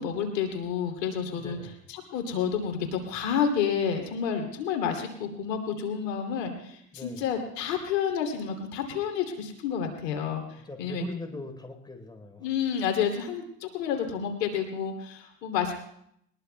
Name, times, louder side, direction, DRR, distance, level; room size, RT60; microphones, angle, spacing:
voice 1, 0.0-1.6 1.9-11.1 12.4-15.7, left 7 dB, 85° left, 4 dB, 3.0 m, -30 dB
voice 2, 1.3-1.8 6.9-7.2 10.6-12.5, left 2 dB, 10° left, 4 dB, 3.9 m, -41 dB
22.0 x 21.5 x 2.3 m, 0.72 s
supercardioid pair, 95°, 48 cm